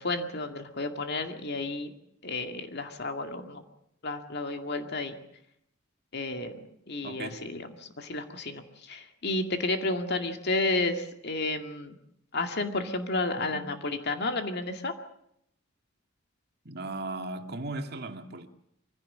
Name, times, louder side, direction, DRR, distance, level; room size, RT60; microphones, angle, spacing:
voice 1, 0.0-1.9 2.2-3.6 4.0-5.1 6.1-12.0 12.3-14.9, left 2 dB, 55° left, 2.2 m, -32 dB
voice 2, 7.0-7.4 13.4-13.7 16.6-18.5, right 2 dB, 50° right, 2.2 m, -37 dB
24.0 x 16.5 x 8.6 m
head